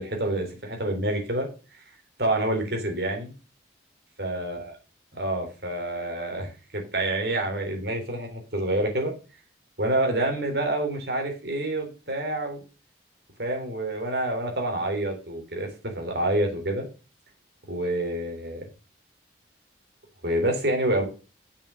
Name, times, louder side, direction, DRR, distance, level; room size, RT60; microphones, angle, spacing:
voice 1, 0.0-1.5 2.2-3.3 4.2-4.7 5.2-9.1 9.8-12.6 13.4-16.9 17.7-18.6 20.2-21.1, right 1 dB, 60° right, 2 dB, 3.6 m, -27 dB
7.0 x 6.7 x 5.7 m, 0.33 s
head